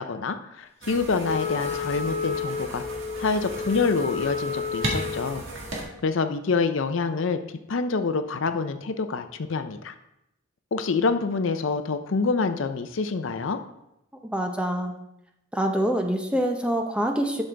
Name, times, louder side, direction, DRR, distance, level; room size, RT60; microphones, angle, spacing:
voice 1, 0.0-2.8 3.2-5.4 6.0-7.4 7.7-9.9 10.7-13.6, left 4 dB, 60° left, 9 dB, 0.5 m, -26 dB
sound 1, 0.8-5.8, right 2 dB, 60° right, 1.8 m, -35 dB
Wind instrument woodwind instrument, 1.3-5.4, left 5 dB, 30° left, 1.0 m, -31 dB
voice 2, 14.3-14.9 15.5-17.4, right 1 dB, 5° right, 3 dB, 0.7 m, -25 dB
11.0 x 6.5 x 3.4 m, 0.85 s
head